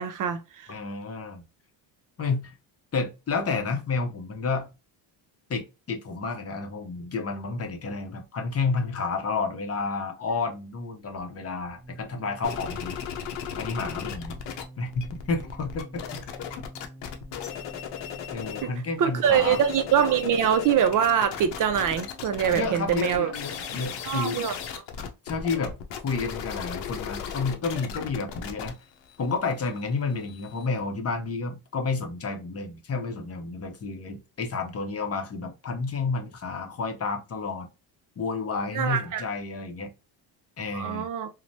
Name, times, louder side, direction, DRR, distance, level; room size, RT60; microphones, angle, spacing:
voice 1, 0.0-0.7 18.6-18.7 19.0-23.3 24.0-24.5 38.7-39.2 40.7-41.3, right 8 dB, 50° right, 0.4 m, -24 dB
voice 2, 0.7-1.4 2.2-2.5 2.9-4.7 5.5-13.0 13.6-14.4 14.8-16.2 18.3-19.6 22.5-24.4 25.2-25.7 26.0-28.8 29.2-37.7 38.2-39.9 40.6-41.1, left 4 dB, 35° left, 0.6 m, -30 dB
sound 1, 11.0-23.8, right 2 dB, 10° left, 0.9 m, -48 dB
sound 2, 12.4-14.6 14.9-18.7 19.1-30.7, left 8 dB, 75° left, 0.7 m, -36 dB
3.1 x 2.1 x 2.6 m
cardioid pair, 105°, 43 cm